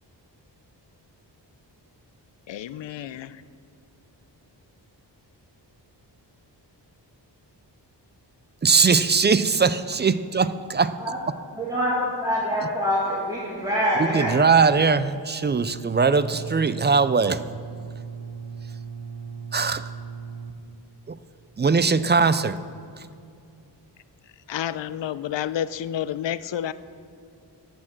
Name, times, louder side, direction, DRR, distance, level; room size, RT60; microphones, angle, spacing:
voice 1, 2.5-3.3 24.5-26.7, left 10 dB, 85° left, 15 dB, 0.6 m, -30 dB
voice 2, 8.6-11.0 14.0-17.4 19.5-19.9 21.1-21.2 21.6-22.6, right 5 dB, 25° right, 14 dB, 0.3 m, -20 dB
voice 3, 11.6-14.4, equal, 10° right, -6 dB, 2.1 m, -25 dB
sound 1, 15.5-20.5, right 6 dB, 85° right, 1.3 m, -37 dB
13.5 x 8.7 x 6.0 m, 2.4 s
wide cardioid pair, 130°, 43 cm